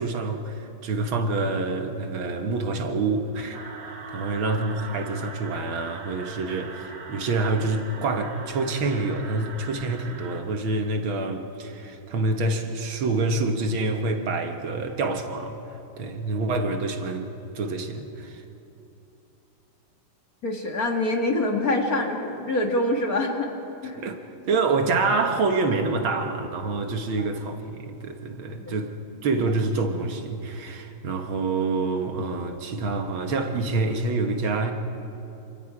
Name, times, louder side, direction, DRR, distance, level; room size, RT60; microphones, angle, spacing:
voice 1, 0.0-3.6 4.1-15.6 16.0-17.3 17.5-18.4 24.0-24.2 24.5-29.0 29.2-34.7, right 3 dB, 70° right, 2.1 m, -27 dB
sound 1, 3.5-10.4, right 4 dB, 90° right, 2.7 m, -41 dB
voice 2, 20.4-23.5 23.8-24.0 27.2-27.3 28.6-28.8, left 2 dB, 45° left, 2.0 m, -25 dB
28.0 x 26.0 x 4.9 m
omnidirectional pair, 2.4 m